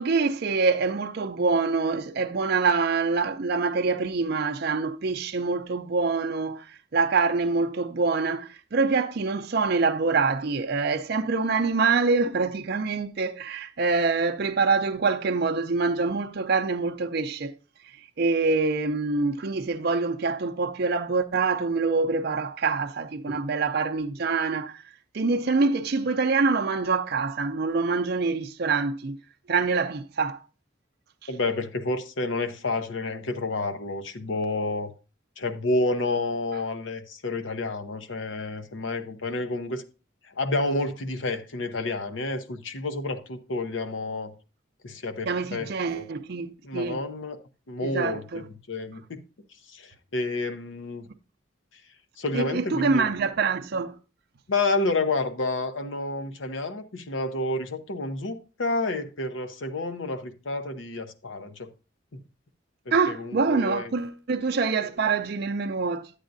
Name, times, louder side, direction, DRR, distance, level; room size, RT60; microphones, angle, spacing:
voice 1, 0.0-17.5 18.0-24.8 25.1-29.2 29.5-30.4 31.2-31.3 45.3-47.0 47.8-48.4 52.3-54.0 62.9-66.1, right 4 dB, 50° right, 0.5 m, -25 dB
voice 2, 31.3-34.9 35.4-39.8 40.4-44.3 44.8-46.0 46.6-47.4 47.7-49.2 49.7-51.1 52.2-53.0 54.5-61.7 63.1-63.9, left 2 dB, 70° left, 0.8 m, -29 dB
10.5 x 8.2 x 2.6 m
head